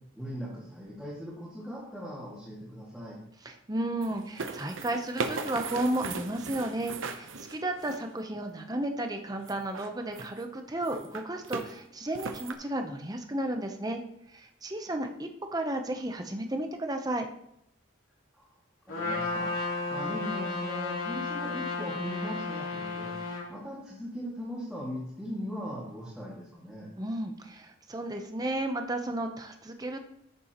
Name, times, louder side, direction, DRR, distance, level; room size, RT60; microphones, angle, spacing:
voice 1, 0.1-3.2 18.3-18.5 18.9-23.1 23.5-26.9, equal, 5° right, -8 dB, 2.2 m, -39 dB
voice 2, 3.4-14.0 14.3-17.3 27.0-30.0, right 1 dB, 20° right, 5 dB, 0.8 m, -33 dB
sound 1, 4.0-8.2 9.4-10.4 10.8-11.7 12.1-12.5, right 4 dB, 80° right, 0.9 m, -37 dB
Trumpet, 18.9-23.5, left 3 dB, 85° left, 3.4 m, -33 dB
13.5 x 6.9 x 3.0 m, 0.76 s
head